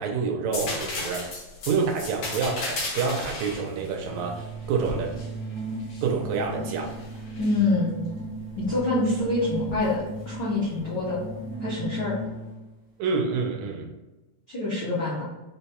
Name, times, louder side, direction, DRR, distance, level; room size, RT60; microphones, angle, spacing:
voice 1, 0.0-1.3 1.7-5.1 6.0-6.9 13.0-13.9, right 5 dB, 75° right, 1 dB, 1.8 m, -27 dB
sound 1, 0.5-6.1 6.6-7.6 9.7-9.9, left 2 dB, 65° left, 2.3 m, -35 dB
sound 2, 4.0-12.6, right 2 dB, 35° right, 0.8 m, -36 dB
voice 2, 7.4-8.0 8.6-11.2 11.6-12.1 14.5-15.2, left 2 dB, 90° left, -8 dB, 0.9 m, -26 dB
5.2 x 2.2 x 4.1 m, 1.1 s
omnidirectional pair, 3.5 m